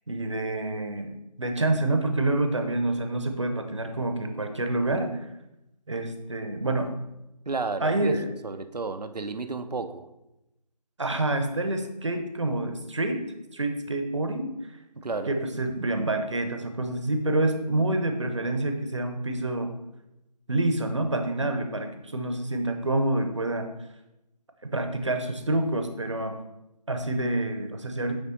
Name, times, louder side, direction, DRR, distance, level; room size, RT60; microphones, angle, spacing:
voice 1, 0.1-5.2 5.9-6.9 7.8-8.3 11.0-13.2 13.5-14.5 15.3-19.7 20.5-23.7 24.6-26.4 26.9-28.2, right 2 dB, 45° right, 6 dB, 0.9 m, -27 dB
voice 2, 7.5-8.1 8.4-10.1 15.0-15.3, right 4 dB, 75° right, 9 dB, 0.6 m, -32 dB
9.5 x 3.6 x 4.1 m, 0.91 s
figure-of-eight pair, 165°, 21 cm